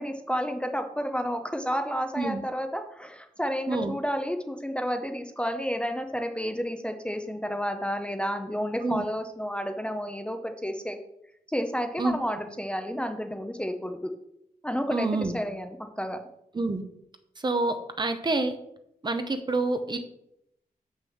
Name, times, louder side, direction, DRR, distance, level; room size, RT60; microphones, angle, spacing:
voice 1, 0.0-11.0 11.5-14.1 14.6-16.2, equal, 5° left, 6 dB, 0.7 m, -31 dB
voice 2, 14.9-15.3 16.5-16.8 17.4-18.5 19.0-20.0, right 2 dB, 30° right, 8 dB, 0.9 m, -27 dB
7.6 x 6.4 x 6.3 m, 0.78 s
wide cardioid pair, 170°, 15 cm